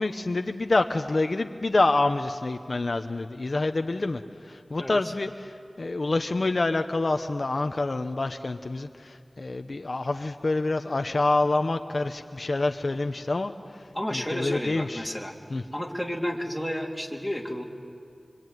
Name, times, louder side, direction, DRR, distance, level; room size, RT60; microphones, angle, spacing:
voice 1, 0.0-15.1 15.5-15.6, left 2 dB, 55° left, 6 dB, 0.9 m, -27 dB
voice 2, 13.9-15.3 15.7-17.6, equal, ahead, 0 dB, 3.4 m, -31 dB
26.0 x 24.5 x 9.4 m, 2.2 s
wide cardioid pair, 70°, 0 cm